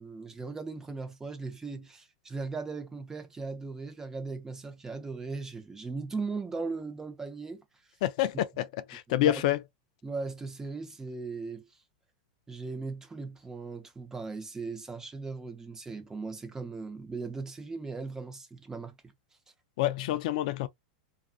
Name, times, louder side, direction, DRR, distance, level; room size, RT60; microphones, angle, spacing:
voice 1, 0.0-7.6 9.1-9.3 10.0-11.7 12.5-19.0, right 4 dB, 10° right, 0.6 m, -38 dB
voice 2, 8.0-9.6 19.8-20.7, left 13 dB, 65° left, 0.3 m, -28 dB
2.4 x 2.3 x 2.4 m
supercardioid pair, 135°, 4 cm